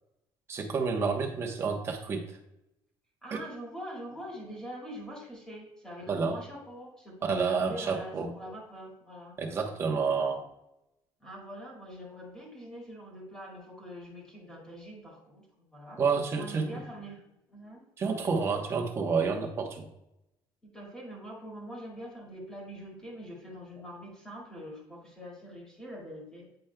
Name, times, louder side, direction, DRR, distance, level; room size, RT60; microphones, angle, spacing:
voice 1, 0.5-2.3 3.3-3.4 6.1-6.4 7.2-8.3 9.4-10.4 16.0-16.8 18.0-19.9, right 5 dB, 30° right, 1 dB, 1.0 m, -29 dB
voice 2, 3.2-9.4 11.2-16.0 16.3-17.9 20.6-26.5, equal, 10° left, -3 dB, 1.9 m, -44 dB
8.9 x 5.2 x 2.2 m, 0.88 s
cardioid pair, 165°, 9 cm